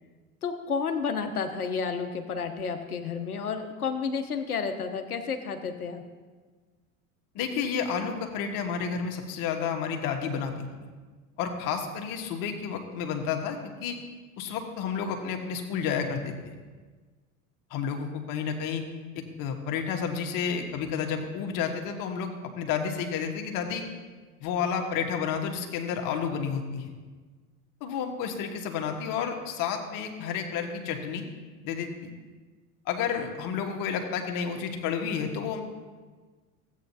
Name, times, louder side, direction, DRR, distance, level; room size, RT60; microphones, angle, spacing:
voice 1, 0.4-6.0, left 5 dB, 85° left, 6 dB, 1.1 m, -31 dB
voice 2, 7.3-10.7 11.4-14.0 14.4-16.3 17.7-18.9 19.1-23.9 24.4-26.9 27.8-31.3 31.6-32.1 32.8-35.6, left 7 dB, 50° left, 3 dB, 1.6 m, -31 dB
15.5 x 8.6 x 2.8 m, 1.4 s
figure-of-eight pair, 80°, 43 cm